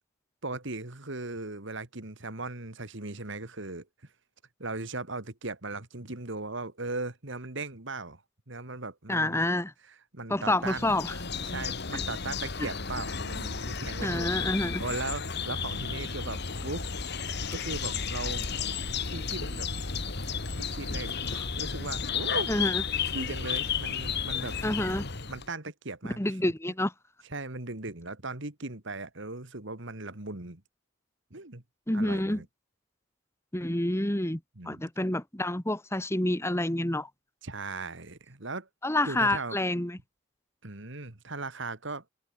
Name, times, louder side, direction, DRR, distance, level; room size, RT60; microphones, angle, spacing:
voice 1, 0.4-3.9 4.6-8.2 8.5-9.5 10.1-11.1 11.4-17.1 17.5-18.4 19.1-19.7 20.6-22.5 23.1-24.6 25.3-26.4 27.3-30.6 31.3-31.6 31.9-32.5 34.6-34.8 37.4-38.7 39.0-39.6 40.6-42.0, right 3 dB, 60° right, 2.4 m, -38 dB
voice 2, 9.1-9.7 10.3-11.1 11.9-12.0 12.6-12.7 14.0-14.8 22.5-22.8 24.6-25.0 26.2-26.9 31.9-32.4 33.5-34.4 34.6-37.1 38.8-40.0, left 1 dB, 10° left, 1.5 m, -28 dB
sound 1, 10.6-25.5, left 6 dB, 55° left, 1.9 m, -33 dB
open air
head